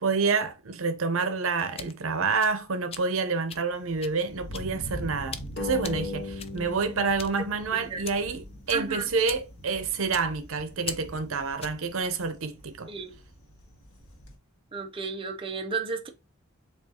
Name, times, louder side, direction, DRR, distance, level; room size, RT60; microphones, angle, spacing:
voice 1, 0.0-12.9, right 4 dB, 80° right, 0.7 m, -28 dB
sound 1, 1.5-11.9, left 7 dB, 30° left, 0.4 m, -43 dB
Thunder, 3.7-14.4, equal, 85° left, 1.3 m, -44 dB
sound 2, 5.6-8.8, left 4 dB, 55° left, 0.7 m, -38 dB
voice 2, 7.7-8.0 8.7-9.1 12.9-13.1 14.7-16.1, right 4 dB, 25° right, 0.6 m, -33 dB
7.1 x 2.4 x 2.8 m
head